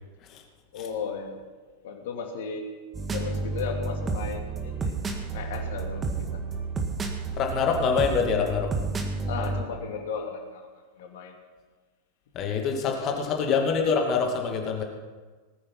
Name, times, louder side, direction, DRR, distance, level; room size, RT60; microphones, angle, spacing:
voice 1, 0.7-1.4 1.8-2.7 3.1-4.9 5.3-6.4 9.3-10.7 11.0-11.4 12.8-13.2, left 5 dB, 55° left, 2 dB, 2.7 m, -35 dB
sound 1, 2.9-9.6, right 4 dB, 20° right, 1.9 m, -31 dB
voice 2, 7.4-8.7 12.3-14.8, left 5 dB, 35° left, 2 dB, 2.3 m, -25 dB
19.0 x 9.5 x 5.9 m, 1.4 s
figure-of-eight pair, 90°, 0 cm